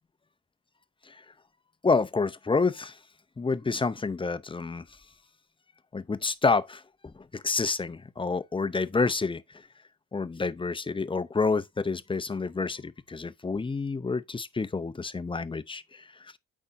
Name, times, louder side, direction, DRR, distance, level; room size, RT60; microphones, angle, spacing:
voice 1, 1.8-3.0 3.4-5.0 5.9-9.7 10.1-16.4, left 4 dB, 15° left, 0.6 m, -29 dB
8.5 x 5.4 x 2.6 m
cardioid pair, 90°, 30 cm